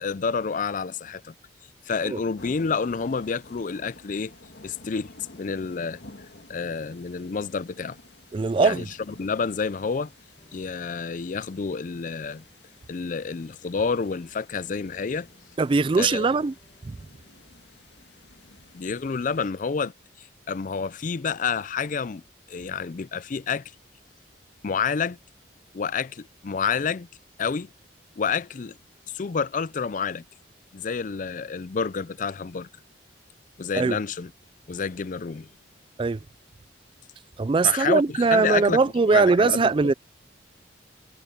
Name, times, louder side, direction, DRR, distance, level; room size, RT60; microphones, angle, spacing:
voice 1, 0.0-1.3 1.9-4.3 4.6-6.0 6.5-8.0 8.6-8.9 9.2-10.1 10.5-12.4 12.9-15.3 16.0-16.3 18.7-19.9 20.2-22.2 22.5-23.6 24.6-25.2 25.7-27.1 27.4-27.7 28.2-28.8 29.1-30.2 30.7-32.7 33.6-34.3 34.7-35.5 37.6-39.9, left 5 dB, 40° left, 0.4 m, -29 dB
sound 1, 2.4-19.5, left 2 dB, 60° left, 2.3 m, -51 dB
voice 2, 8.3-8.9 15.6-16.5 16.8-16.9 33.7-34.0 36.0-36.2 37.4-39.9, right 4 dB, 25° right, 0.3 m, -21 dB
sound 2, 10.3-17.4, equal, 20° left, 6.6 m, -63 dB
head